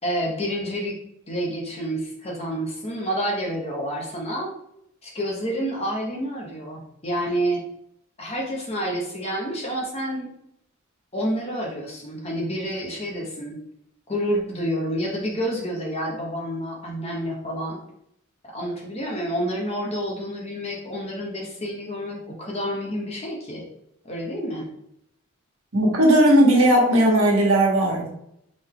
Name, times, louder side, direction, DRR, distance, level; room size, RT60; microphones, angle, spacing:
voice 1, 0.0-1.0 1.3-4.5 5.0-7.6 8.2-10.3 11.1-13.6 14.1-17.8 18.4-23.6 24.0-24.7, equal, 30° left, -2 dB, 1.1 m, -29 dB
voice 2, 25.7-28.1, right 1 dB, 85° right, -1 dB, 1.3 m, -17 dB
3.8 x 3.5 x 3.8 m, 0.75 s
head